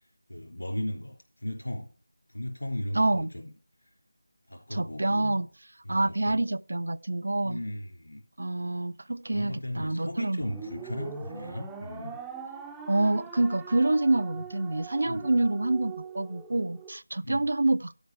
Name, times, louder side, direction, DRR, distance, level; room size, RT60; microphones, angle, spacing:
voice 1, 0.3-1.9 2.3-3.3 4.5-5.4 5.8-6.5 7.4-8.2 9.3-12.2 15.1-15.3 17.2-17.5, left 1 dB, 65° left, 3.5 m, -36 dB
voice 2, 2.9-3.3 4.7-5.5 5.9-7.6 8.4-10.4 12.9-18.0, right 2 dB, 50° right, 0.5 m, -27 dB
sound 1, 10.4-16.9, right 6 dB, 5° right, 0.6 m, -42 dB
12.5 x 5.2 x 4.5 m
figure-of-eight pair, 165°, 0 cm